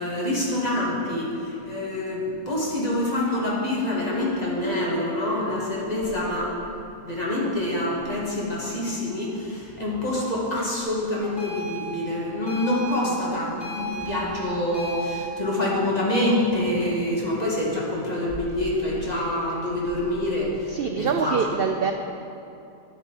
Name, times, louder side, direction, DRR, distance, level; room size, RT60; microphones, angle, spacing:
voice 1, 0.0-6.6 7.0-21.4, left 1 dB, 30° left, -5 dB, 1.8 m, -26 dB
sound 1, 11.4-15.2, right 1 dB, 55° left, 2.7 m, -35 dB
voice 2, 13.0-13.4 20.7-21.9, right 6 dB, 90° right, 5 dB, 0.5 m, -25 dB
10.5 x 7.7 x 4.6 m, 2.7 s
omnidirectional pair, 1.5 m